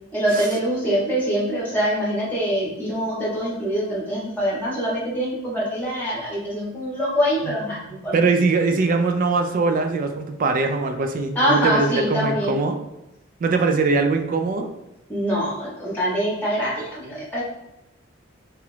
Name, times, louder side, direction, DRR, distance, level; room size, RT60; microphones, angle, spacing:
voice 1, 0.1-8.1 11.3-12.6 15.1-17.4, equal, 10° left, -6 dB, 1.0 m, -24 dB
voice 2, 8.1-12.8 13.4-14.7, right 4 dB, 45° right, 6 dB, 0.3 m, -21 dB
2.9 x 2.4 x 3.1 m, 0.93 s
head